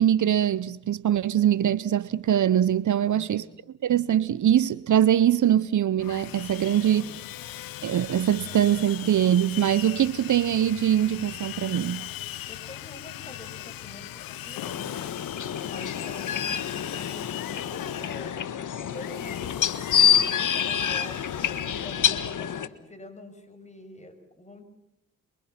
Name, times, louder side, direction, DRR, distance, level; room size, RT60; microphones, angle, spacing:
voice 1, 0.0-3.4 3.8-7.1 7.8-12.0, right 10 dB, 60° right, 0.9 m, -22 dB
voice 2, 3.0-3.5 12.5-15.1 15.6-24.6, left 2 dB, 20° left, 7.2 m, -46 dB
Sawing, 6.0-22.4, left 14 dB, 80° left, 1.0 m, -39 dB
sound 1, 14.6-22.7, left 9 dB, 60° left, 1.7 m, -27 dB
27.5 x 23.5 x 5.9 m
supercardioid pair, 50°, 34 cm